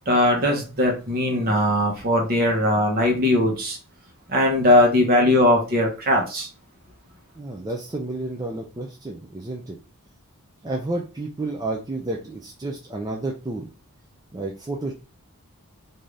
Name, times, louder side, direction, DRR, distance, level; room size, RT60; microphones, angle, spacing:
voice 1, 0.1-3.8 4.3-6.5, left 1 dB, 40° right, 1 dB, 1.1 m, -20 dB
voice 2, 7.4-9.8 10.6-13.7 14.3-14.9, right 2 dB, 15° right, 0 dB, 0.4 m, -31 dB
3.7 x 2.7 x 3.2 m, 0.32 s
head